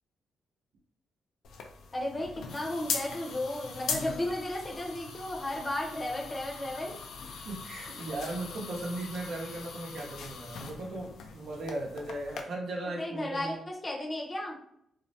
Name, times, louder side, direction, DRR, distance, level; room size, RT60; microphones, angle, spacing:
sound 1, 1.4-12.4, left 5 dB, 80° left, 0.3 m, -40 dB
voice 1, 1.9-7.0 13.0-14.6, left 1 dB, 30° left, 0 dB, 0.6 m, -34 dB
voice 2, 7.4-13.5, right 2 dB, 70° right, -1 dB, 0.7 m, -37 dB
2.4 x 2.1 x 2.6 m, 0.72 s
cardioid pair, 80°, 0 cm